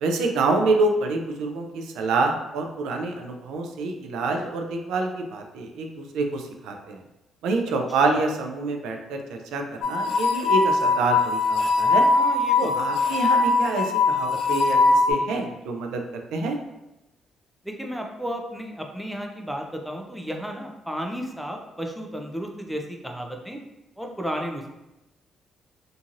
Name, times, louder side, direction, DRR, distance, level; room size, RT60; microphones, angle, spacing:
voice 1, 0.0-7.0 7.4-12.1 12.6-14.8 15.1-16.6, right 3 dB, 90° right, 3 dB, 0.3 m, -27 dB
sound 1, 9.8-15.1, left 3 dB, 75° left, 0.4 m, -21 dB
voice 2, 12.1-12.8 17.6-23.6 24.0-24.7, equal, ahead, 2 dB, 0.4 m, -33 dB
2.8 x 2.6 x 2.5 m, 0.96 s
cardioid pair, 90°, 0 cm